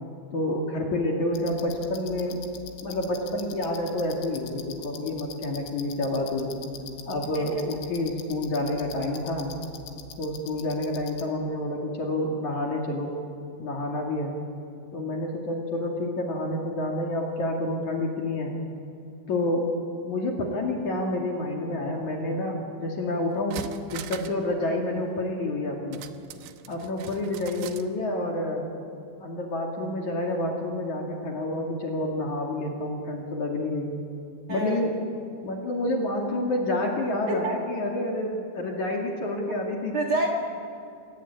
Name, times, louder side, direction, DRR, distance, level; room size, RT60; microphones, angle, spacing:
voice 1, 0.3-2.4 2.8-6.5 7.0-9.5 10.2-13.1 13.6-14.3 14.9-18.5 19.3-19.7 20.0-26.0 26.7-28.7 29.2-33.9 34.5-34.9 35.4-39.9, left 1 dB, 45° left, 0 dB, 3.2 m, -28 dB
sound 1, 1.3-11.2, left 8 dB, 75° left, 3.9 m, -44 dB
sound 2, 22.9-23.0 23.3-24.5 24.7-24.8 25.9-27.9 28.2-28.3, right 10 dB, 75° right, 2.8 m, -41 dB
voice 2, 34.5-34.8 37.3-37.6 39.9-40.3, right 2 dB, 45° right, 1 dB, 2.3 m, -28 dB
28.5 x 18.5 x 8.6 m, 2.6 s
omnidirectional pair, 5.6 m